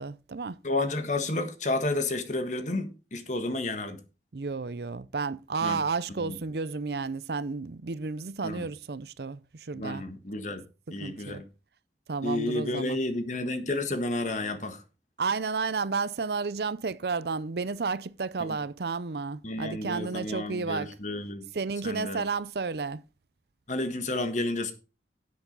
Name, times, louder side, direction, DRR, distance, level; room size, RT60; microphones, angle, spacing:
voice 1, 0.0-0.6 4.3-10.1 11.0-11.4 12.1-13.0 15.2-20.9 21.5-23.0, right 4 dB, 65° right, 0.6 m, -32 dB
voice 2, 0.6-4.0 5.6-5.8 6.2-6.4 8.4-8.7 9.7-10.6 10.9-11.4 12.2-14.8 18.4-18.6 19.4-21.4 21.8-22.2 23.7-24.7, left 2 dB, 45° left, 1.6 m, -31 dB
10.5 x 8.3 x 4.0 m
head